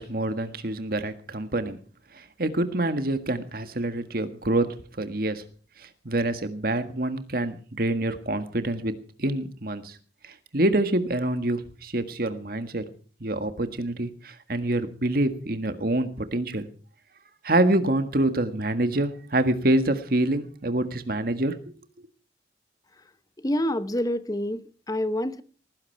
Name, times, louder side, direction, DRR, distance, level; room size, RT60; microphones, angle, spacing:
voice 1, 0.0-1.8 2.1-4.7 5.0-5.4 5.8-8.9 9.2-10.0 10.2-12.8 13.2-16.7 17.4-21.6, right 1 dB, 55° right, 9 dB, 1.6 m, -26 dB
voice 2, 23.4-25.4, left 1 dB, 20° left, 13 dB, 0.9 m, -27 dB
18.5 x 15.5 x 4.6 m, 0.40 s
head